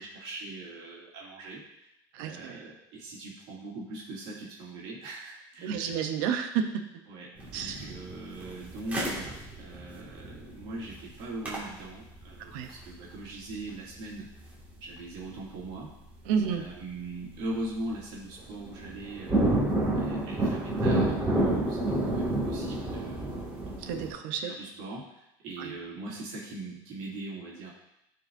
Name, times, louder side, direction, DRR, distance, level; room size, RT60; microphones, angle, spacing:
voice 1, 0.0-1.9 2.2-6.1 7.1-14.3 14.8-15.9 16.5-21.8 22.0-23.4 24.4-27.7, right 2 dB, 65° right, -5 dB, 2.5 m, -41 dB
voice 2, 2.1-2.6 5.6-6.8 7.5-7.9 12.5-12.7 16.3-16.7 23.8-24.6 25.6-25.7, right 7 dB, 85° right, 6 dB, 0.8 m, -31 dB
sound 1, 7.4-15.4 15.7-15.8 16.4-16.7 17.1-17.5 17.9-18.0 18.3-24.1, right 1 dB, 15° right, 2.1 m, -30 dB
13.0 x 4.7 x 2.7 m, 0.87 s
cardioid pair, 150°, 10 cm